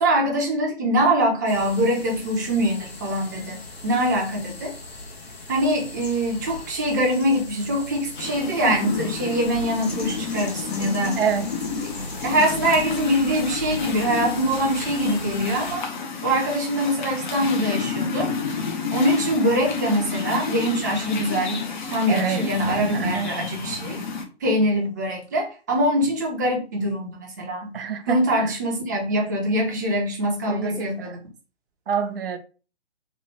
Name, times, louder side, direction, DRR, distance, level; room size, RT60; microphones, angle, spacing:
voice 1, 0.0-4.7 5.5-11.2 12.2-15.8 16.2-18.3 18.9-24.0 24.4-27.7 28.1-31.2, equal, 20° right, 0.5 m, -23 dB
sound 1, 1.5-15.8, left 2 dB, 70° left, 1.0 m, -39 dB
sound 2, 8.2-24.3, left 4 dB, 45° left, 0.6 m, -30 dB
voice 2, 11.2-11.5 22.1-22.4 22.9-23.3 27.7-28.6 30.5-30.9 31.9-32.4, right 7 dB, 60° right, 0.6 m, -26 dB
3.0 x 2.2 x 3.1 m
figure-of-eight pair, 140°, 32 cm